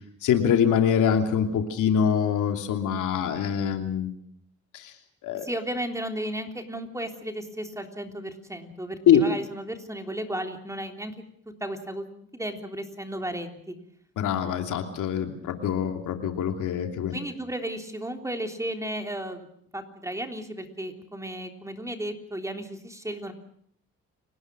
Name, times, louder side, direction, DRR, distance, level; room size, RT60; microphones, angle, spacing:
voice 1, 0.2-4.1 4.7-4.9 5.2-5.5 9.1-9.2 14.2-17.1, left 8 dB, 80° left, 5 dB, 3.0 m, -24 dB
voice 2, 5.4-11.1 11.5-12.1 12.3-13.8 17.1-19.5 19.7-23.3, right 1 dB, 10° right, 4 dB, 3.5 m, -34 dB
30.0 x 18.5 x 6.2 m, 0.65 s
cardioid pair, 90°, 30 cm